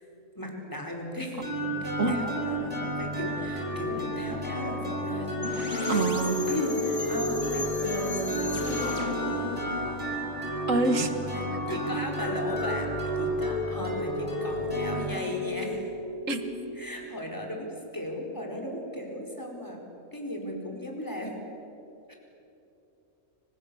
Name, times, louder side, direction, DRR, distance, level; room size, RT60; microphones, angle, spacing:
voice 1, 0.3-9.5 11.0-12.9 13.2-15.8 16.7-19.8 20.1-21.3 22.1-22.2, left 1 dB, 15° left, 1 dB, 4.8 m, -36 dB
sound 1, 1.4-17.0, equal, 25° right, 6.2 m, -31 dB
sound 2, 5.4-11.2, left 3 dB, 55° left, 2.2 m, -37 dB
voice 2, 5.9-6.5 10.7-11.1 16.3-16.4, right 3 dB, 60° right, 7 dB, 2.2 m, -25 dB
30.0 x 26.0 x 7.1 m, 2.9 s
omnidirectional pair, 1.5 m